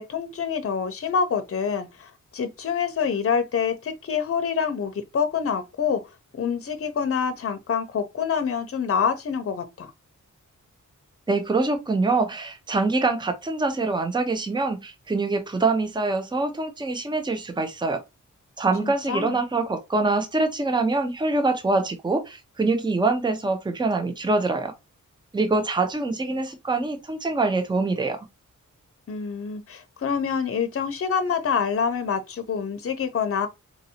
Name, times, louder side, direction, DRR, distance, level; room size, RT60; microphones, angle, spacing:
voice 1, 0.0-6.0 6.3-9.9 18.8-19.4 29.1-33.5, left 6 dB, 45° left, 0.6 m, -26 dB
voice 2, 11.3-18.0 18.6-24.7 25.3-28.2, right 3 dB, 15° right, 0.6 m, -24 dB
4.0 x 2.6 x 2.7 m
wide cardioid pair, 165°, 32 cm